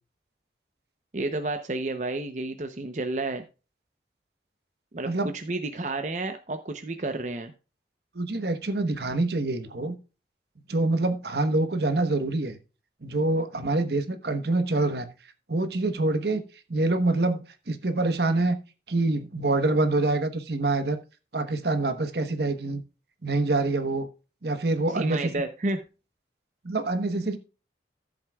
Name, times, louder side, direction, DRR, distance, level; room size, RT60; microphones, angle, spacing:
voice 1, 1.1-3.4 4.9-7.5 24.9-25.8, right 2 dB, 40° right, 0.7 m, -31 dB
voice 2, 8.1-9.9 10.7-12.6 13.0-15.1 15.5-16.4 16.7-18.6 18.9-21.0 21.3-22.8 23.2-24.1 24.4-25.3 26.6-27.4, right 2 dB, 65° right, 1.1 m, -26 dB
14.5 x 7.6 x 2.3 m
head